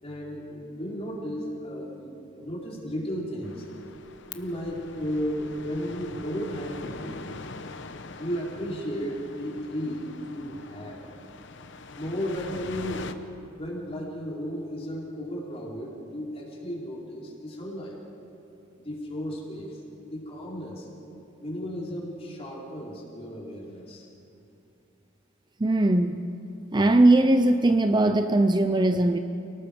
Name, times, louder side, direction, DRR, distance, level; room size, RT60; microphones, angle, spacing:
voice 1, 0.0-3.7 4.3-7.5 8.2-11.0 11.9-13.2 13.6-18.0 18.8-19.8 20.1-20.9 21.4-24.1, equal, 30° left, -3 dB, 4.2 m, -34 dB
sound 1, 3.4-13.1, left 3 dB, 65° left, 1.0 m, -43 dB
voice 2, 25.6-26.2 26.7-29.2, right 2 dB, 20° right, 8 dB, 0.6 m, -20 dB
29.5 x 18.5 x 5.2 m, 2.8 s
head